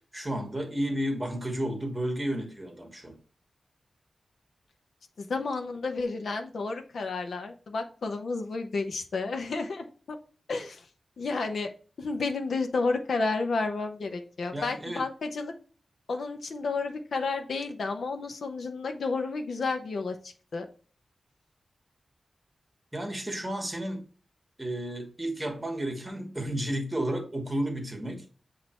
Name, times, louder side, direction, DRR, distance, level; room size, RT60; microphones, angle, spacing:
voice 1, 0.1-3.2 14.5-15.0 22.9-24.0 24.6-28.3, right 1 dB, 15° right, 1.4 m, -32 dB
voice 2, 5.2-10.2 10.5-10.9 11.2-11.7 12.0-15.5 16.1-20.7, left 3 dB, 70° left, 0.9 m, -31 dB
8.0 x 2.8 x 4.3 m
wide cardioid pair, 130°, 0 cm